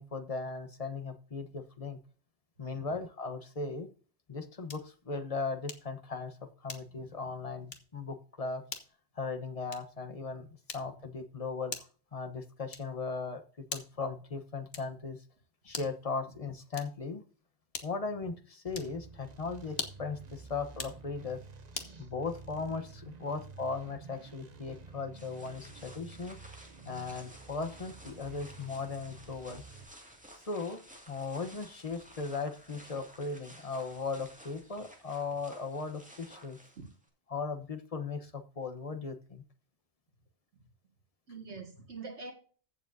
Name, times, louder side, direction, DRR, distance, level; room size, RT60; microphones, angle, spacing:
voice 1, 0.0-2.0 2.6-3.9 4.3-8.6 9.2-10.5 10.7-15.2 15.6-17.2 17.8-21.4 22.0-26.4 26.8-29.6 30.5-30.8 31.1-36.6 37.3-39.4, left 4 dB, 35° left, 8 dB, 1.1 m, -38 dB
sound 1, 4.7-5.0 5.7-6.0 6.7-7.1 7.7-8.0 8.7-9.0 9.7-10.0 10.7-11.1 11.7-12.1 12.7-13.1 13.7-14.1 14.7-15.1 15.7-16.1 16.7-17.1 17.7-18.1 18.7-19.0 19.7-20.1 20.7-21.0 21.7-22.0, left 5 dB, 55° left, 1.3 m, -43 dB
sound 2, 18.7-29.9, right 4 dB, 40° right, 0.9 m, -51 dB
voice 2, 21.8-22.1 36.8-36.9 41.3-42.3, right 4 dB, 70° right, 2 dB, 2.3 m, -45 dB
sound 3, 25.1-37.1, equal, 5° right, 2.1 m, -54 dB
15.0 x 7.1 x 2.7 m, 0.40 s
omnidirectional pair, 1.2 m